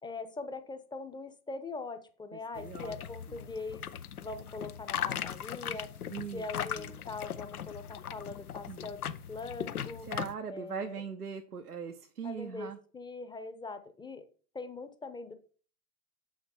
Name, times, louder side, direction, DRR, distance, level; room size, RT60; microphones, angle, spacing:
voice 1, 0.0-3.8 4.2-5.9 6.3-9.0 9.3-10.1 10.5-11.0 12.2-14.3 14.5-15.3, left 3 dB, 10° left, 9 dB, 0.9 m, -42 dB
voice 2, 2.3-2.9 3.3-3.5 6.1-6.4 6.8-7.1 8.7-8.9 10.1-12.8, right 6 dB, 85° right, 5 dB, 0.8 m, -41 dB
sound 1, 2.6-10.3, left 9 dB, 75° left, 0.7 m, -39 dB
7.4 x 5.9 x 4.4 m, 0.40 s
figure-of-eight pair, 85°, 44 cm